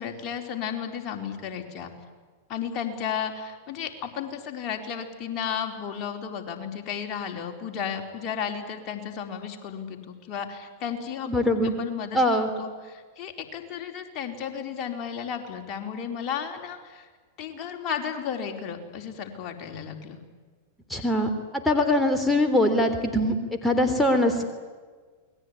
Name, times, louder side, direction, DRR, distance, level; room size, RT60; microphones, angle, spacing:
voice 1, 0.0-1.9 2.5-11.3 11.8-12.2 12.6-17.1 17.4-20.2, left 7 dB, 40° left, 3 dB, 4.5 m, -33 dB
voice 2, 11.3-11.7 12.1-12.5 20.9-23.4 23.6-24.4, left 1 dB, 5° left, 4 dB, 3.5 m, -22 dB
28.5 x 21.5 x 9.8 m, 1.5 s
hypercardioid pair, 100°, 0 cm